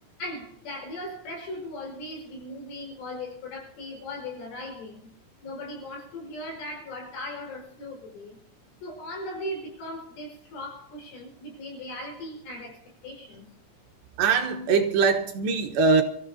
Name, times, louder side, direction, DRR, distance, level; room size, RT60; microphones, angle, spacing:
voice 1, 0.2-5.1 5.4-8.4 8.8-13.5, left 1 dB, 75° left, 7.3 m, -38 dB
voice 2, 14.2-16.0, right 5 dB, 70° right, 3.1 m, -22 dB
27.0 x 14.5 x 2.7 m
omnidirectional pair, 5.7 m